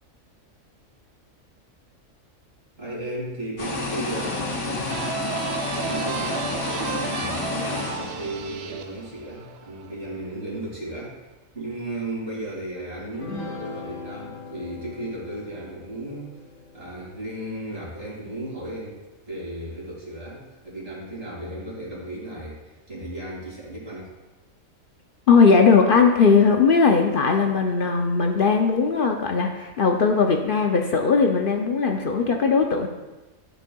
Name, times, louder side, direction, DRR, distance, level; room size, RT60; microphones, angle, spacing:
voice 1, 2.8-5.1 5.7-11.3 11.5-16.3 16.7-19.0 19.3-24.1, right 1 dB, 45° right, -5 dB, 2.7 m, -35 dB
sound 1, 3.6-8.8, left 3 dB, 90° left, 1.9 m, -30 dB
sound 2, 4.9-10.3, right 7 dB, 65° right, 0.7 m, -34 dB
sound 3, 13.1-18.8, left 4 dB, 75° left, 1.8 m, -41 dB
voice 2, 25.3-32.9, left 5 dB, 60° left, 3 dB, 0.6 m, -19 dB
12.5 x 5.5 x 2.3 m, 1.1 s
omnidirectional pair, 1.5 m